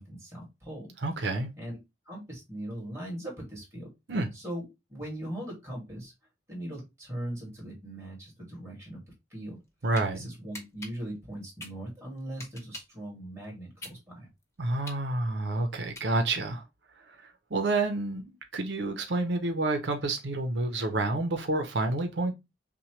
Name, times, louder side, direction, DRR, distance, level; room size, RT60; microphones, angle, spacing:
voice 1, 0.0-0.9 1.6-1.8 2.1-3.9 4.3-6.1 6.5-9.0 9.3-9.6 10.1-14.3, right 1 dB, 15° right, 2.1 m, -40 dB
voice 2, 1.0-1.5 4.1-4.3 9.8-10.3 14.6-16.6 17.2-22.3, right 2 dB, 90° right, 0.7 m, -29 dB
sound 1, 9.5-10.1 10.5-13.0 13.4-16.5, left 1 dB, 15° left, 0.8 m, -45 dB
5.9 x 2.2 x 3.1 m
head